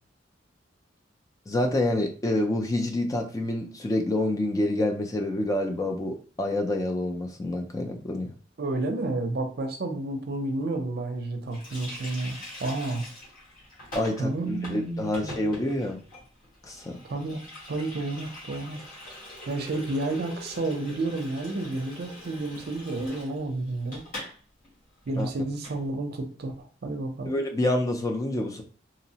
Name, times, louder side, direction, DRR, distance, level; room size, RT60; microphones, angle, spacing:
voice 1, 1.5-8.3 13.9-16.0 16.6-17.0 25.2-25.3 27.3-28.6, left 1 dB, 20° left, 3 dB, 0.3 m, -27 dB
voice 2, 8.6-13.1 14.2-15.4 17.0-17.4 17.7-18.8 19.5-24.0 25.1-27.3, right 2 dB, 55° right, 5 dB, 0.5 m, -31 dB
Water tap faucet, 11.5-24.4 24.6-24.8 25.1-25.8, left 1 dB, 45° left, 1.1 m, -43 dB
2.8 x 2.0 x 2.7 m, 0.38 s
head